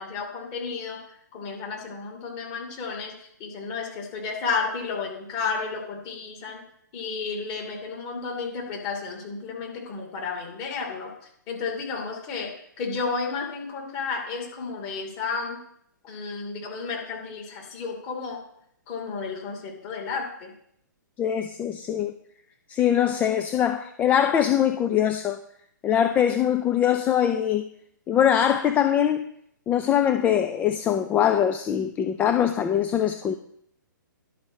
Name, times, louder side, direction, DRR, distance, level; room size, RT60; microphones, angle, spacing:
voice 1, 0.0-6.6 6.9-11.1 11.5-15.6 16.0-18.4 18.9-20.5, left 4 dB, 30° left, 2.7 m, -32 dB
voice 2, 21.2-22.1 22.7-25.4 25.8-27.7 28.1-29.2 29.7-33.4, left 9 dB, 15° left, 0.4 m, -22 dB
11.0 x 5.2 x 6.3 m
figure-of-eight pair, 130°, 11 cm